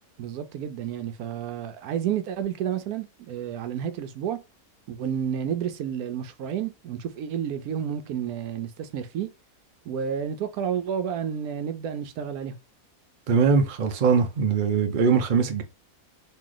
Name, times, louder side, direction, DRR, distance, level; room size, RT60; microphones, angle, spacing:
voice 1, 0.2-4.4 4.9-9.3 9.9-12.5, right 8 dB, 80° right, 1.1 m, -30 dB
voice 2, 13.3-15.6, right 5 dB, 50° right, 0.6 m, -21 dB
3.1 x 2.7 x 3.8 m
omnidirectional pair, 1.6 m